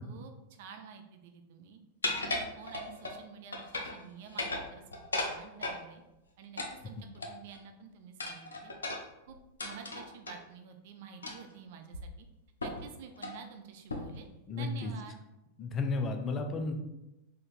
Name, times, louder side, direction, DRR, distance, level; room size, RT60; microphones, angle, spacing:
voice 1, 0.0-1.8 2.1-4.8 5.3-6.0 6.4-8.7 9.3-12.3 12.6-14.3 14.5-15.2, right 7 dB, 50° right, 6 dB, 0.5 m, -49 dB
sound 1, 2.0-3.2 3.5-4.0 4.3-5.8 6.6-7.6 8.2-10.4 11.2-11.5 11.9-12.0 12.6-12.9 13.2-13.4 13.9-14.2, left 2 dB, 75° left, 0.6 m, -36 dB
voice 2, 14.5-14.9 15.6-16.7, left 3 dB, 25° left, 4 dB, 0.6 m, -33 dB
3.9 x 3.3 x 4.1 m, 0.92 s
figure-of-eight pair, 90°, 0 cm